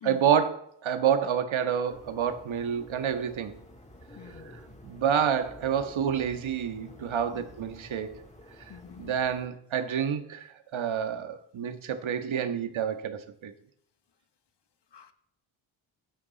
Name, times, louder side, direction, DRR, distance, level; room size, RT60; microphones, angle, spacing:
voice 1, 0.0-3.5 4.5-8.2 8.6-8.7 9.0-13.5, right 8 dB, 70° right, 1.8 m, -28 dB
sound 1, 1.8-9.5, left 1 dB, 15° left, 3.9 m, -50 dB
voice 2, 4.2-4.5 7.3-7.4 8.7-9.2 14.9-15.1, left 9 dB, 55° left, 1.8 m, -46 dB
16.0 x 12.5 x 4.2 m
cardioid pair, 85°, 48 cm